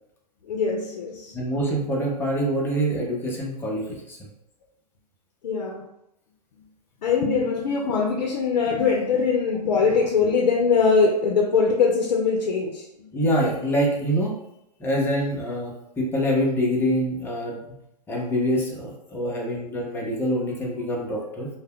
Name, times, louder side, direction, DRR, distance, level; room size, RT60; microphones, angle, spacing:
voice 1, 0.4-1.4 5.4-5.8 7.0-13.1 19.2-19.4, left 5 dB, 75° left, 0 dB, 0.5 m, -22 dB
voice 2, 1.3-4.3 13.1-14.4 14.8-17.6 18.1-21.5, equal, 10° left, -3 dB, 0.6 m, -25 dB
2.1 x 2.1 x 3.5 m, 0.82 s
hypercardioid pair, 125°, 21 cm